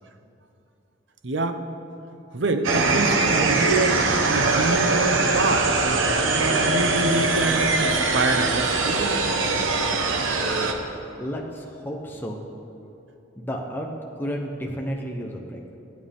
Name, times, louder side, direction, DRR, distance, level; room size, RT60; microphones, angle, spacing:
voice 1, 1.2-1.6 2.3-4.0 4.3-5.7 6.2-9.4, right 2 dB, 70° right, 7 dB, 0.9 m, -26 dB
sound 1, 2.6-10.7, right 3 dB, 90° right, 1.2 m, -22 dB
voice 2, 11.2-12.4 13.4-15.6, equal, 10° left, 0 dB, 1.0 m, -32 dB
26.0 x 9.1 x 3.6 m, 2.7 s
head